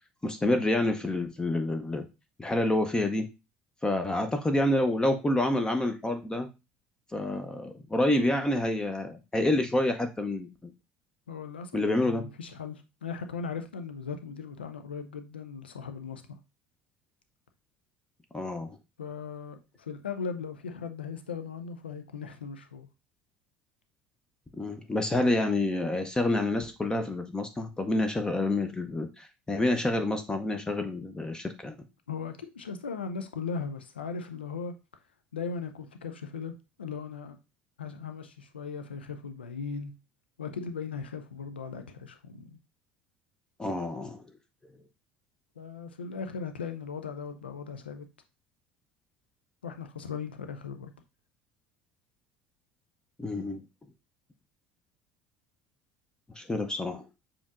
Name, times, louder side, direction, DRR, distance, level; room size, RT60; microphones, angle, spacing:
voice 1, 0.2-2.1 2.4-3.3 3.8-6.5 7.1-10.7 11.7-12.2 18.3-18.8 24.6-31.8 43.6-44.3 53.2-53.6 56.4-57.0, left 1 dB, 15° left, 0.6 m, -28 dB
voice 2, 11.3-16.4 19.0-22.9 32.1-34.8 35.3-37.4 37.8-39.9 40.4-42.6 45.6-48.1 49.6-50.9, left 5 dB, 80° left, 0.4 m, -38 dB
7.0 x 2.9 x 2.4 m
figure-of-eight pair, 65°, 6 cm